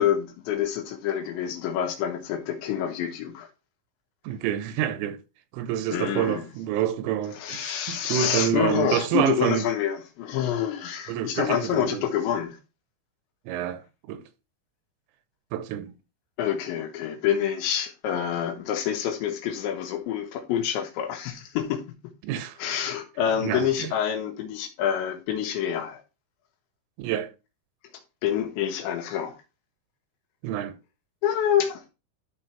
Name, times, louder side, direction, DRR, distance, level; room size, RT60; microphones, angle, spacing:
voice 1, 0.0-3.5 5.9-6.4 7.4-12.6 16.4-21.8 22.6-26.0 28.2-29.4 31.2-31.9, left 9 dB, 75° left, 3.3 m, -27 dB
voice 2, 4.3-5.2 5.5-9.6 11.1-12.0 13.5-13.8 14.1-14.2 15.5-15.9 22.2-22.6 23.4-23.9 27.0-27.3 30.4-30.7, right 10 dB, 90° right, 3.7 m, -27 dB
12.0 x 4.4 x 4.3 m
omnidirectional pair, 5.7 m